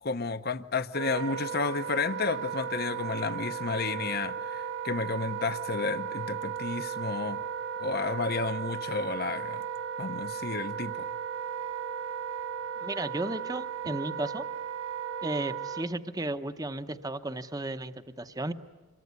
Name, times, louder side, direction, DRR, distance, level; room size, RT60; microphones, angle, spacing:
voice 1, 0.0-7.4 7.8-9.6 10.0-11.1, left 4 dB, 45° left, 0.8 m, -32 dB
Wind instrument woodwind instrument, 0.9-15.9, right 7 dB, 60° right, 1.4 m, -36 dB
voice 2, 12.8-14.4 15.2-18.5, right 2 dB, 15° right, 0.8 m, -34 dB
27.0 x 23.0 x 9.5 m
head